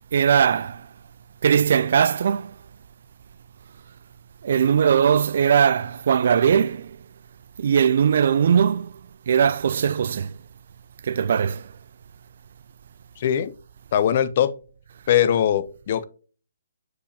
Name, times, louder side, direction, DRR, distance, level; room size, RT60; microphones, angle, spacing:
voice 1, 0.1-0.9 1.4-2.5 4.4-7.0 7.6-8.9 9.3-10.3 11.0-11.7, right 7 dB, 55° right, 0.3 m, -20 dB
voice 2, 13.2-13.5 13.9-14.5 15.1-16.0, left 10 dB, 45° left, 0.6 m, -21 dB
6.9 x 4.8 x 2.9 m
hypercardioid pair, 145°, 0 cm